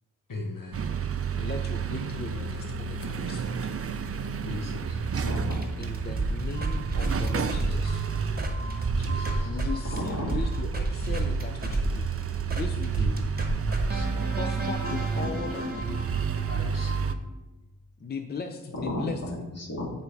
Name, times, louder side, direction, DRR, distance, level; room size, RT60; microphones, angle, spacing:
voice 1, 0.3-0.9 4.4-5.0 8.0-8.5 9.0-9.5 13.0-13.1 13.7-14.2 16.5-17.1, left 2 dB, 70° left, 0 dB, 1.2 m, -38 dB
sound 1, 0.7-17.2, right 6 dB, 40° right, 0.4 m, -31 dB
voice 2, 1.4-3.7 5.8-8.0 9.4-12.1 12.5-13.1 14.3-16.1 18.0-19.2, left 4 dB, 30° left, 6 dB, 0.4 m, -38 dB
voice 3, 5.1-5.7 9.9-10.4 14.1-14.3 15.2-15.7 18.6-19.9, left 1 dB, 45° left, -3 dB, 2.1 m, -34 dB
sound 2, 5.3-9.7 10.0-17.2, right 2 dB, 25° right, 1.0 m, -32 dB
8.8 x 3.5 x 4.7 m, 1.1 s
wide cardioid pair, 85°, 35 cm